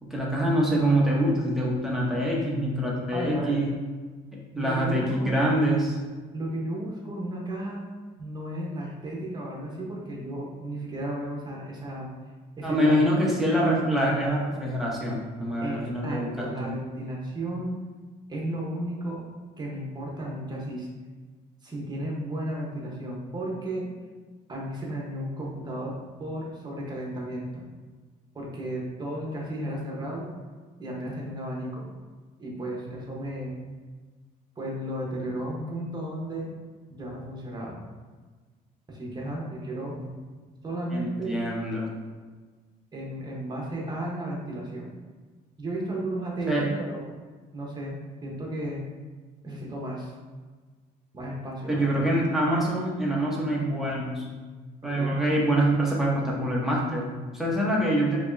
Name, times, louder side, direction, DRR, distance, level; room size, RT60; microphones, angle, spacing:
voice 1, 0.0-3.7 4.6-6.0 12.6-16.7 39.9-40.0 40.9-41.9 46.5-46.7 51.7-54.3 54.8-58.2, right 1 dB, ahead, -4 dB, 1.0 m, -25 dB
voice 2, 3.1-3.6 4.5-5.3 6.3-7.8 8.2-12.1 12.6-13.0 15.6-17.8 18.3-19.2 19.6-20.9 21.6-23.9 24.5-27.6 28.3-30.3 30.8-31.9 32.4-33.5 34.6-36.5 37.0-37.8 38.9-39.9 40.6-41.3 42.9-44.9 45.6-47.0 47.5-48.8 49.4-50.1 51.1-52.0 54.8-55.2, right 1 dB, 25° right, -3 dB, 1.1 m, -34 dB
4.4 x 3.0 x 2.7 m, 1.4 s
cardioid pair, 110°, 17 cm